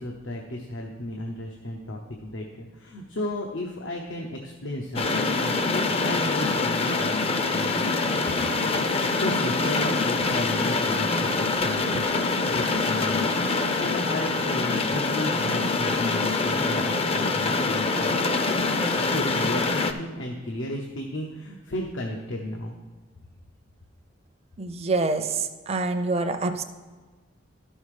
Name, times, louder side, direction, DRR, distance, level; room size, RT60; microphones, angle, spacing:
voice 1, 0.0-7.9 8.9-18.1 19.0-22.7, left 1 dB, 80° left, 1 dB, 0.8 m, -34 dB
sound 1, 5.0-19.9, left 3 dB, 30° left, 0.5 m, -25 dB
voice 2, 24.6-26.6, right 3 dB, 35° right, 7 dB, 0.6 m, -26 dB
12.0 x 5.5 x 4.9 m, 1.4 s
head